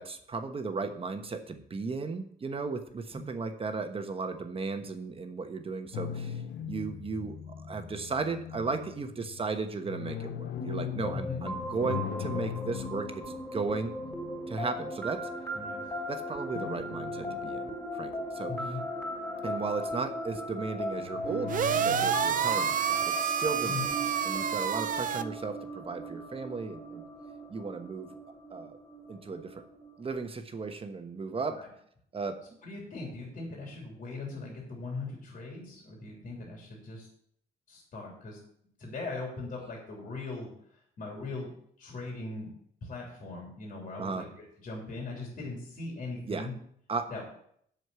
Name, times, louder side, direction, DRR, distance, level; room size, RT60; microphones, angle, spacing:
voice 1, 0.0-13.2 13.5-13.9 14.5-15.3 16.1-18.6 19.4-23.9 24.2-27.0 27.5-28.1 28.5-28.8 29.1-29.6 30.0-31.6 32.1-32.4 44.0-44.2 46.3-46.5 46.9-47.2, right 4 dB, 30° right, 7 dB, 1.2 m, -35 dB
sound 1, 5.9-15.3 16.5-18.1 18.5-19.6 21.0-22.6, left 9 dB, 85° left, 0.8 m, -40 dB
sound 2, 10.6-30.1, equal, 15° left, 3.4 m, -38 dB
voice 2, 18.5-18.8 23.6-23.8 31.5-31.7 32.6-37.1 37.7-38.4 38.8-40.5 41.0-41.5 41.8-42.5 42.8-44.3 44.6-46.5 47.1-47.2, left 3 dB, 50° left, -2 dB, 3.2 m, -39 dB
sound 3, 21.5-25.2, right 8 dB, 50° right, 0.6 m, -28 dB
8.0 x 6.6 x 6.8 m, 0.67 s
cardioid pair, 115°, 18 cm